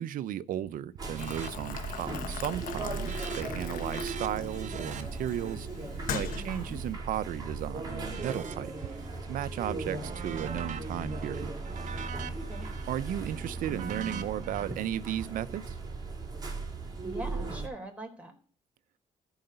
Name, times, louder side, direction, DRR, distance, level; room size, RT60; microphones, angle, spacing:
voice 1, 0.0-5.7 6.1-8.7 9.2-11.5 12.9-15.7, right 11 dB, 80° right, 0.6 m, -35 dB
sound 1, 1.0-17.7, right 3 dB, 30° right, 3.8 m, -37 dB
sound 2, 1.0-1.5 1.8-2.2 2.5-7.4 7.9-9.2 9.6-14.6, right 6 dB, 60° right, 1.3 m, -44 dB
Boiling, 1.2-6.9, left 7 dB, 80° left, 1.2 m, -41 dB
voice 2, 6.2-6.8 12.3-12.7 16.8-18.4, right 2 dB, 10° right, 3.8 m, -43 dB
14.5 x 4.9 x 6.7 m
cardioid pair, 80°, 14 cm